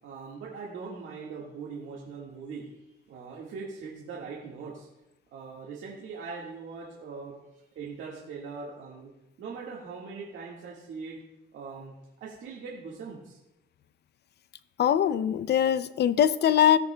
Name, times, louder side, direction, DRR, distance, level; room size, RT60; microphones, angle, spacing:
voice 1, 0.0-2.7 3.1-4.9 5.3-9.1 9.4-11.2 11.5-11.9 12.2-13.4, right 5 dB, 80° right, 1.8 m, -41 dB
voice 2, 14.8-16.8, left 9 dB, 60° left, 0.5 m, -22 dB
17.0 x 7.8 x 2.3 m
cardioid pair, 90°, 20 cm